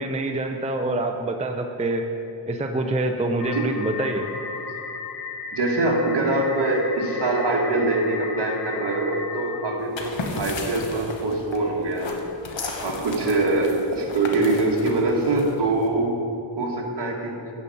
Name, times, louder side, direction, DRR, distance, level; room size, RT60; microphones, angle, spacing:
voice 1, 0.0-2.1 2.5-4.3, right 2 dB, 15° right, 4 dB, 0.5 m, -26 dB
sound 1, 3.4-9.6, left 4 dB, 50° left, 1.2 m, -35 dB
voice 2, 5.5-12.2 12.8-16.2 16.6-17.4, right 2 dB, 55° right, 0 dB, 1.9 m, -23 dB
sound 2, 9.8-15.9, left 3 dB, 70° left, 1.4 m, -35 dB
12.5 x 5.4 x 8.4 m, 2.7 s
wide cardioid pair, 145°, 47 cm